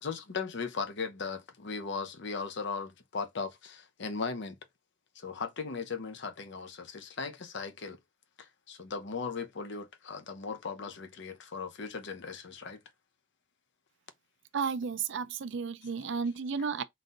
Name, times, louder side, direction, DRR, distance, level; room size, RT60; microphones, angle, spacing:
voice 1, 0.0-4.6 5.1-8.0 8.4-12.8, left 5 dB, 55° left, 0.7 m, -38 dB
voice 2, 14.5-16.8, right 5 dB, 60° right, 0.4 m, -33 dB
3.9 x 2.6 x 3.9 m
head